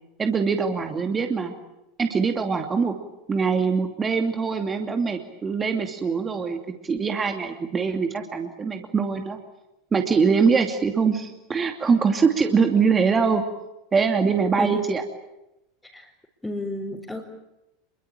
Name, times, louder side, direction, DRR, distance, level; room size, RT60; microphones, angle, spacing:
voice 1, 0.2-1.5 2.0-3.0 3.3-9.4 9.9-13.4 13.9-15.0, right 5 dB, 20° right, 4 dB, 2.6 m, -23 dB
voice 2, 14.2-14.8 15.9-16.1 16.4-17.2, left 2 dB, 5° left, -3 dB, 4.5 m, -32 dB
27.5 x 23.5 x 8.8 m, 0.92 s
figure-of-eight pair, 80°, 0 cm